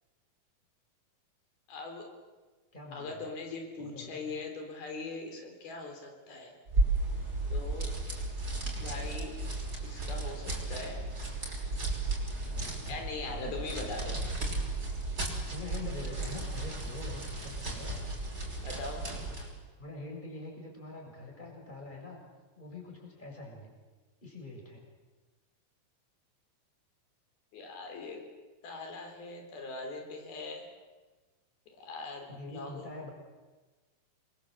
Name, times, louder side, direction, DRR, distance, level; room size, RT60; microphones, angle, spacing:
voice 1, 1.7-2.1 2.9-6.5 7.5-7.9 8.8-9.4 9.8-11.0 12.9-14.2 18.6-19.1 27.5-28.3 28.6-30.7 31.8-32.8, left 3 dB, 80° left, 3 dB, 5.7 m, -41 dB
voice 2, 2.7-3.3 3.8-4.2 8.6-9.1 12.4-13.5 15.5-18.0 19.8-22.2 22.6-23.7 24.2-24.8 32.3-33.1, left 3 dB, 10° left, 0 dB, 6.9 m, -45 dB
sound 1, 6.7-19.6, right 2 dB, 25° right, 6.1 m, -34 dB
28.5 x 23.0 x 8.1 m, 1.3 s
omnidirectional pair, 4.3 m